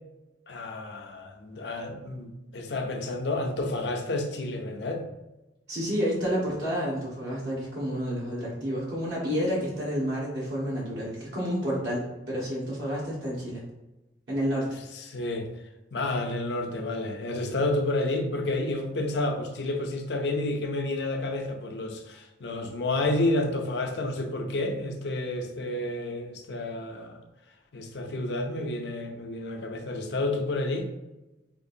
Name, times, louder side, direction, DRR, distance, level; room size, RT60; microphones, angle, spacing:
voice 1, 0.5-5.0 14.9-15.5 15.9-27.2 27.7-30.9, left 2 dB, 70° left, 4 dB, 0.6 m, -30 dB
voice 2, 5.7-13.6 14.3-14.8, equal, 70° right, -6 dB, 1.2 m, -30 dB
5.1 x 2.5 x 2.6 m, 1.0 s
head